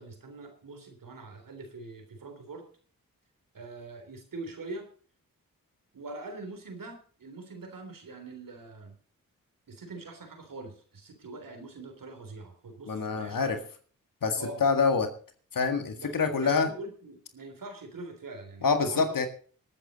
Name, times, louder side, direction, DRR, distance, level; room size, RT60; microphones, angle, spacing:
voice 1, 0.0-2.7 3.5-4.9 5.9-8.9 9.7-13.6 14.4-14.6 15.9-19.2, right 2 dB, 65° right, 5 dB, 3.5 m, -43 dB
voice 2, 12.9-13.6 14.2-15.1 15.5-16.7 18.6-19.3, left 5 dB, 65° left, 7 dB, 1.8 m, -26 dB
19.0 x 8.9 x 4.0 m, 0.42 s
cardioid pair, 45°, 35 cm